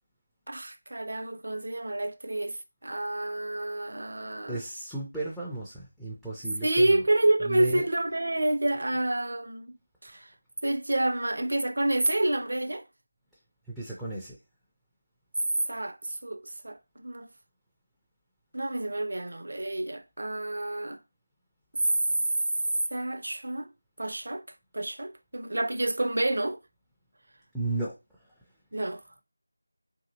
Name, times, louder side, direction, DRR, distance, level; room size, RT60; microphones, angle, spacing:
voice 1, 0.5-4.6 6.6-9.7 10.0-10.3 10.6-12.8 15.7-17.3 18.5-21.0 22.9-23.7 24.0-24.4 24.7-26.6 28.7-29.0, right 1 dB, 60° right, 0.5 m, -29 dB
voice 2, 4.5-7.0 7.4-7.9 13.7-14.4 27.5-28.0, right 2 dB, ahead, 0.4 m, -34 dB
2.7 x 2.6 x 2.7 m
figure-of-eight pair, 165°, 0 cm